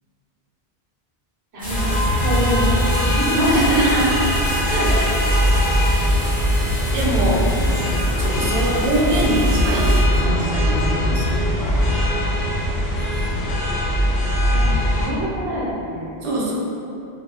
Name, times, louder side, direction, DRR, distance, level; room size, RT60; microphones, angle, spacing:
voice 1, 1.5-2.7 3.0-3.5 4.9-5.0 14.5-16.1, equal, 90° right, -8 dB, 1.1 m, -26 dB
sound 1, 1.6-10.0, equal, 10° right, 0.6 m, -31 dB
sound 2, 1.7-15.1, equal, 90° left, 0.8 m, -20 dB
voice 2, 3.5-4.2 4.7-4.9 6.9-7.4 8.2-9.8 10.1-11.5 16.2-16.5, right 1 dB, 65° right, -4 dB, 0.7 m, -23 dB
2.3 x 2.0 x 3.3 m, 2.6 s
omnidirectional pair, 1.1 m